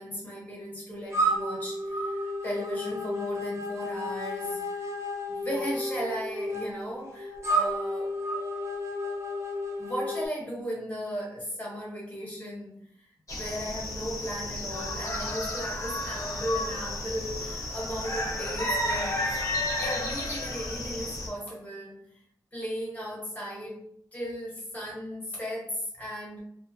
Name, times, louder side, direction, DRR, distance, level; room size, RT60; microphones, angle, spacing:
voice 1, 0.0-4.9 5.3-8.1 9.8-12.9 13.3-19.3 19.8-22.1 22.5-26.4, equal, 20° left, -4 dB, 1.2 m, -36 dB
sound 1, 1.1-10.3, equal, 40° right, 0.7 m, -31 dB
sound 2, 13.3-21.3, left 1 dB, 45° left, 0.6 m, -32 dB
2.5 x 2.3 x 2.8 m, 0.68 s
wide cardioid pair, 95°, 7 cm